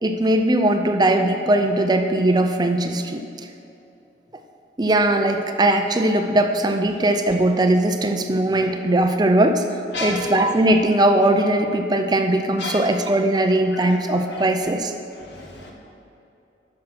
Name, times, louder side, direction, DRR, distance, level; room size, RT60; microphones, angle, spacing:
voice 1, 0.0-3.2 4.8-9.6 10.0-14.9, right 1 dB, 25° right, 6 dB, 0.5 m, -19 dB
voice 2, 15.3-15.7, left 3 dB, 70° left, -1 dB, 1.7 m, -31 dB
10.5 x 6.3 x 6.0 m, 2.8 s
head